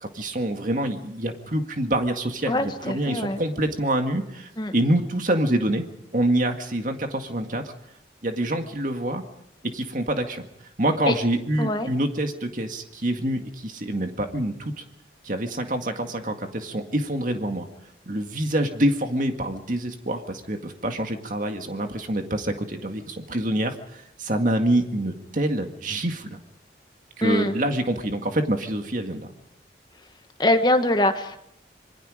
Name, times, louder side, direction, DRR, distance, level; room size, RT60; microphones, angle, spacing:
voice 1, 0.0-5.8 6.1-7.6 8.2-9.2 9.7-10.5 10.8-14.8 15.2-17.7 18.1-26.4 27.2-29.3, right 1 dB, 45° right, 5 dB, 2.0 m, -26 dB
voice 2, 2.5-3.4 4.6-4.7 11.1-11.2 11.6-11.9 27.2-27.6 30.4-31.4, left 1 dB, 25° left, 7 dB, 1.4 m, -23 dB
26.5 x 23.0 x 5.1 m, 0.76 s
head